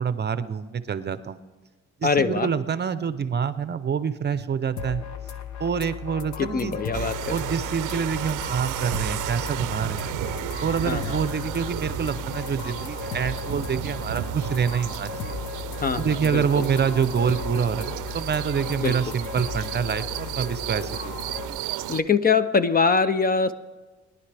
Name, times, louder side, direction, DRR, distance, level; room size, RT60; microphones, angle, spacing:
voice 1, 0.0-1.4 2.0-5.0 5.6-6.8 7.3-10.1 10.6-15.4 16.0-21.3, right 7 dB, 35° right, 13 dB, 0.6 m, -26 dB
voice 2, 2.0-2.5 6.4-7.4 10.9-11.2 15.8-16.6 18.8-19.0 21.9-23.5, left 5 dB, 30° left, 13 dB, 0.5 m, -23 dB
sound 1, 4.8-21.5, left 7 dB, 70° left, 1.0 m, -36 dB
sound 2, 6.9-22.0, right 13 dB, 90° right, 0.6 m, -33 dB
21.5 x 10.5 x 3.4 m, 1.3 s
cardioid pair, 90°, 30 cm